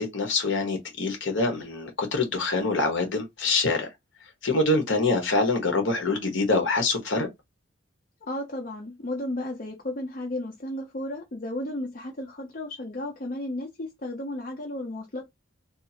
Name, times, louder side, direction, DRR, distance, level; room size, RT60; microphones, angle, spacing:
voice 1, 0.0-3.9 4.4-7.3, left 3 dB, 60° left, 1.0 m, -25 dB
voice 2, 8.2-15.2, left 1 dB, 40° left, 0.5 m, -34 dB
2.7 x 2.4 x 2.7 m
head